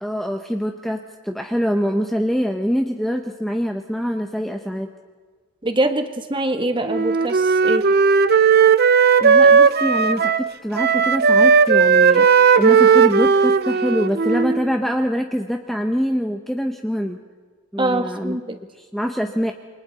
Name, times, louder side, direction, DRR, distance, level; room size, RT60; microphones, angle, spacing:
voice 1, 0.0-4.9 9.2-12.3 12.6-17.2 17.7-18.4 18.8-19.5, equal, ahead, 4 dB, 0.8 m, -24 dB
voice 2, 5.6-7.9 17.8-18.6, right 1 dB, 25° right, 7 dB, 1.4 m, -23 dB
Wind instrument woodwind instrument, 6.9-10.5 10.8-14.7, right 6 dB, 45° right, 0.6 m, -15 dB
28.5 x 24.5 x 4.1 m, 1.5 s
head